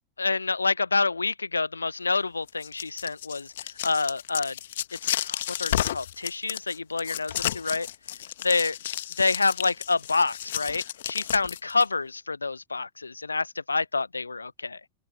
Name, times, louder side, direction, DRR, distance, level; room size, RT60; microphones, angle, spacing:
voice 1, 0.2-4.5 5.0-7.9 8.4-8.7 9.2-14.8, left 4 dB, 80° left, 1.1 m, -27 dB
sound 1, 2.5-11.8, left 12 dB, 60° left, 1.7 m, -32 dB
figure-of-eight pair, 90°, 0 cm